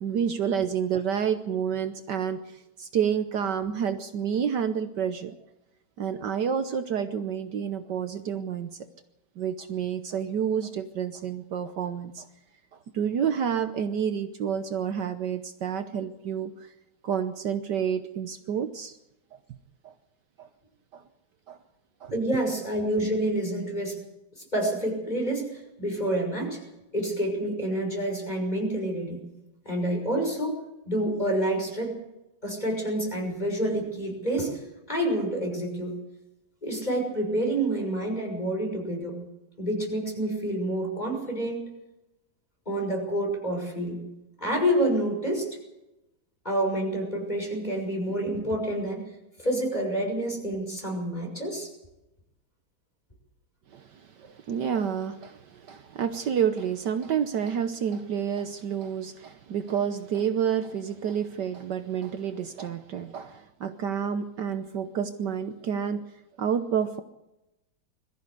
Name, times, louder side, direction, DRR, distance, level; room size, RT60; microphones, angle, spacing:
voice 1, 0.0-5.4 6.0-8.8 9.4-12.3 12.9-16.7 17.0-19.0 19.3-19.4 19.8-19.9 20.4-20.5 20.9-21.0 21.5-21.6 22.0-22.2 53.7-66.0 66.4-67.0, right 8 dB, 65° right, 9 dB, 1.5 m, -29 dB
voice 2, 22.1-24.0 24.4-26.6 26.9-29.2 29.6-30.6 30.9-32.0 32.4-34.6 34.9-36.0 36.6-39.2 39.6-41.7 42.7-44.0 44.4-45.5 46.4-49.0 49.4-51.7, right 1 dB, 20° left, 2 dB, 6.2 m, -28 dB
22.0 x 14.5 x 8.3 m, 0.94 s
omnidirectional pair, 2.1 m